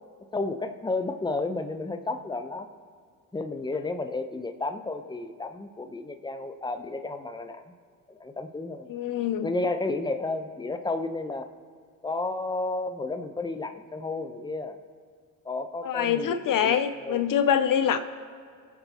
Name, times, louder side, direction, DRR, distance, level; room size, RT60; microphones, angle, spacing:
voice 1, 0.3-2.7 3.3-7.6 8.1-8.9 9.4-11.5 12.0-14.8 15.4-17.4, left 2 dB, 10° left, 7 dB, 0.9 m, -32 dB
voice 2, 8.9-9.5 15.8-18.0, left 8 dB, 55° left, 11 dB, 0.7 m, -25 dB
23.5 x 8.0 x 3.0 m, 2.1 s
supercardioid pair, 60°, 39 cm